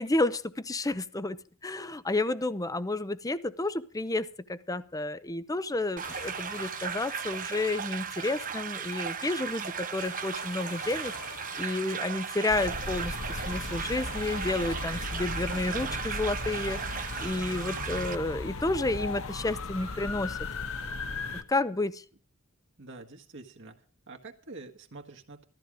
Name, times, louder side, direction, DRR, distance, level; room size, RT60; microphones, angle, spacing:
voice 1, 0.0-11.1 11.6-20.4 21.5-22.0, left 2 dB, 15° left, 15 dB, 0.7 m, -31 dB
sound 1, 6.0-20.8, left 3 dB, 85° left, 6.3 m, -51 dB
sound 2, 6.0-18.2, right 7 dB, 40° right, 0.8 m, -36 dB
sound 3, 12.5-21.4, left 3 dB, 65° left, 1.3 m, -37 dB
voice 2, 22.8-25.4, right 3 dB, 60° right, 2 dB, 1.6 m, -47 dB
15.0 x 13.5 x 5.0 m, 0.41 s
head